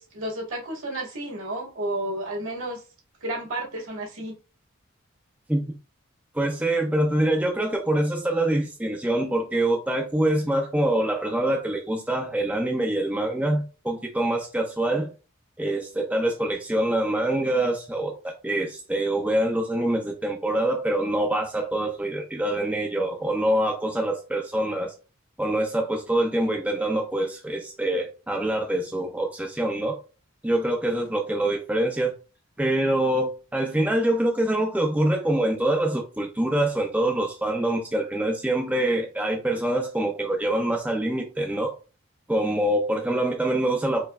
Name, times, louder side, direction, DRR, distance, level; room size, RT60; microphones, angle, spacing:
voice 1, 0.0-2.8 3.2-4.3, right 1 dB, 70° right, 2.0 m, -31 dB
voice 2, 6.3-15.1 15.6-24.9 25.4-30.0 30.4-32.1 32.6-41.7 42.3-44.1, right 1 dB, 5° right, 0.5 m, -25 dB
4.5 x 3.0 x 2.4 m
head